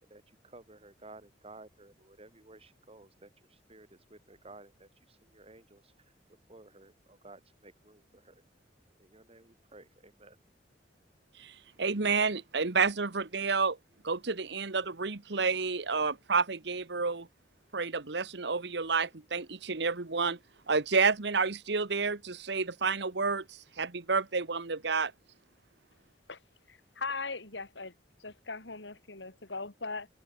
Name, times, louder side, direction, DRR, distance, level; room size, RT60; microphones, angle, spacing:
voice 1, 0.0-6.1 6.5-8.4 9.0-10.4, right 2 dB, 35° right, 6.3 m, -55 dB
voice 2, 11.4-13.8 14.0-17.3 17.7-20.4 20.7-25.1, right 4 dB, 70° right, 1.3 m, -30 dB
voice 3, 26.7-30.1, left 4 dB, 80° left, 3.7 m, -39 dB
open air
head